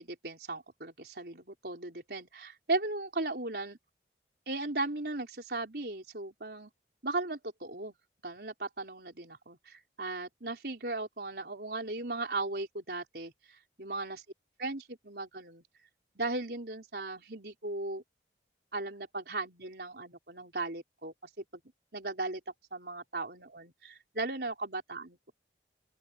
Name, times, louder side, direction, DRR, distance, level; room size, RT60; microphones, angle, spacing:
voice 1, 0.0-3.8 4.5-6.7 7.0-7.9 8.2-13.3 13.8-14.2 14.6-15.6 16.2-18.0 18.7-21.6 21.9-22.4 22.7-25.3, right 2 dB, 65° right, 4.1 m, -37 dB
open air
head